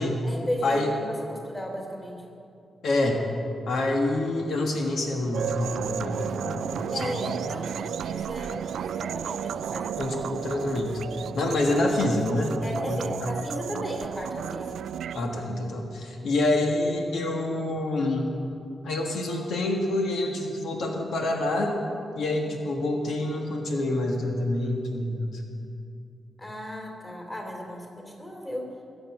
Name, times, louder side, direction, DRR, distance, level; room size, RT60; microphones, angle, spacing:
voice 1, 0.2-2.2 6.9-10.1 12.6-14.8 26.4-28.7, equal, 15° left, 0 dB, 2.8 m, -35 dB
voice 2, 2.8-3.2 3.7-7.4 10.0-11.0 11.3-12.5 12.9-13.1 15.1-18.3 18.8-21.8 22.1-25.4, left 2 dB, 85° left, 2 dB, 1.6 m, -27 dB
sound 1, 5.3-15.2, right 8 dB, 90° right, 0.3 m, -33 dB
22.0 x 8.0 x 6.1 m, 2.5 s
wide cardioid pair, 120°, 0 cm